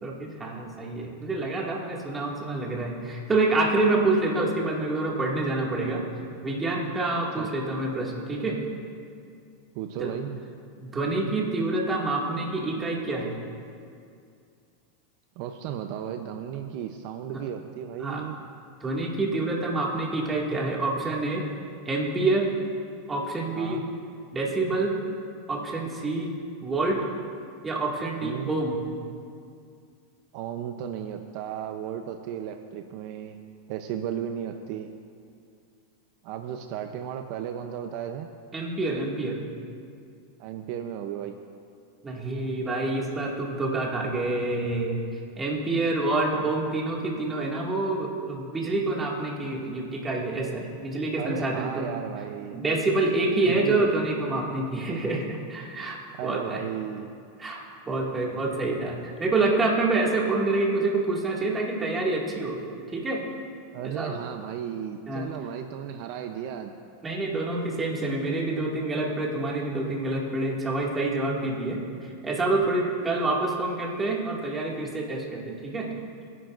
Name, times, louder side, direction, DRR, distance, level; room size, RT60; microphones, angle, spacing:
voice 1, 0.0-6.0 6.4-8.6 10.0-10.1 10.8-13.3 18.0-18.2 18.8-21.4 21.9-22.5 23.1-23.8 24.3-25.0 25.5-26.3 26.6-27.0 27.6-28.8 38.5-39.4 42.0-45.0 45.4-51.9 52.5-56.6 57.4-62.6 62.9-63.2 63.8-64.2 65.1-65.3 67.0-75.9, right 2 dB, 15° right, -3 dB, 2.2 m, -27 dB
voice 2, 9.7-10.4 15.4-18.4 23.5-23.8 28.2-28.5 30.3-33.4 33.7-34.9 36.2-38.3 40.4-41.3 46.4-46.5 51.2-52.6 53.4-53.9 56.1-57.1 63.7-66.7, right 9 dB, 55° right, 6 dB, 0.7 m, -34 dB
27.0 x 11.0 x 2.6 m, 2.4 s
supercardioid pair, 135°, 0 cm